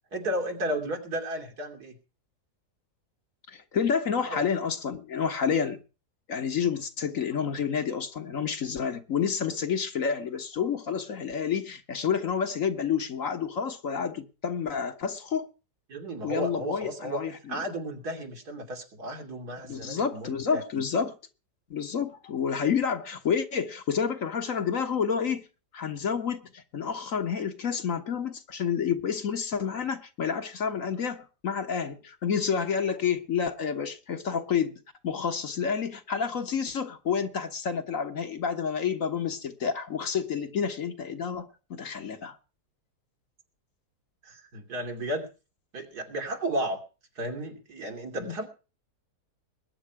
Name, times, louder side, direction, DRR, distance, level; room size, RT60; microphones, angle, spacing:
voice 1, 0.1-2.0 4.2-4.4 15.9-17.2 17.5-20.8 44.2-45.3 45.7-46.8 47.2-48.5, right 1 dB, 75° right, 3.5 m, -33 dB
voice 2, 3.5-5.8 6.3-15.5 16.2-17.6 19.7-21.2 21.7-25.5 25.7-42.4 48.2-48.5, left 7 dB, 55° left, 1.6 m, -29 dB
20.5 x 9.5 x 4.7 m
omnidirectional pair, 1.7 m